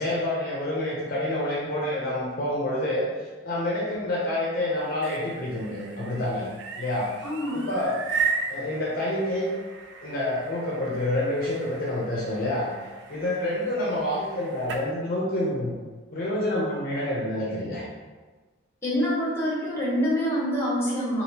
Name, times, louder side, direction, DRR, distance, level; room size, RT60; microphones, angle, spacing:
voice 1, 0.0-6.5 6.8-7.1 7.5-8.0 8.5-9.5 10.0-12.7 13.1-15.8 16.1-17.8, left 1 dB, 45° left, -5 dB, 0.6 m, -28 dB
sound 1, 4.8-14.9, right 5 dB, 60° right, 0.3 m, -36 dB
voice 2, 7.2-7.6 18.8-21.2, equal, 10° left, -6 dB, 0.9 m, -26 dB
3.4 x 2.5 x 2.8 m, 1.3 s
head